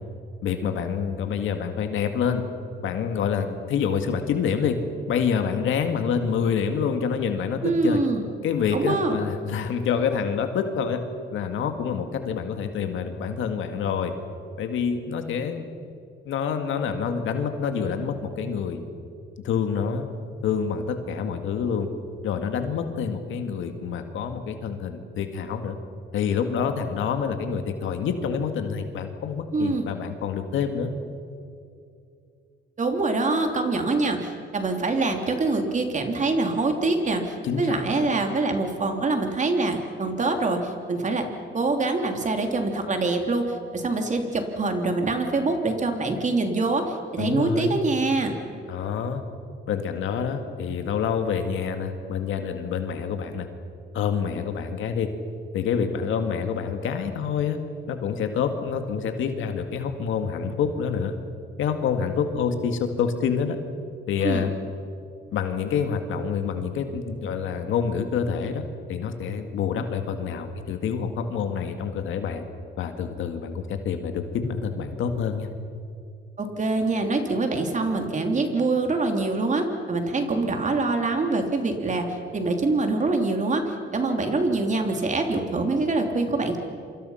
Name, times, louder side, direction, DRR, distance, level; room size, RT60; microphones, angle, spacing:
voice 1, 0.4-2.4 2.8-4.8 5.1-8.0 8.4-11.0 11.3-14.1 14.6-15.7 16.3-18.8 19.4-20.1 20.4-21.9 22.2-25.8 26.1-30.9 37.4-37.8 47.2-47.7 48.7-49.2 49.7-53.5 53.9-55.1 55.5-57.6 57.9-61.1 61.6-63.6 64.1-64.5 65.3-68.6 68.9-72.5 72.8-75.5, left 6 dB, 80° left, 6 dB, 2.1 m, -27 dB
voice 2, 7.6-8.3 8.7-9.2 29.5-29.9 32.8-41.3 41.5-48.4 64.2-64.4 76.4-86.6, right 3 dB, 40° right, 4 dB, 3.2 m, -25 dB
27.5 x 24.5 x 5.8 m, 2.4 s
cardioid pair, 90°, 20 cm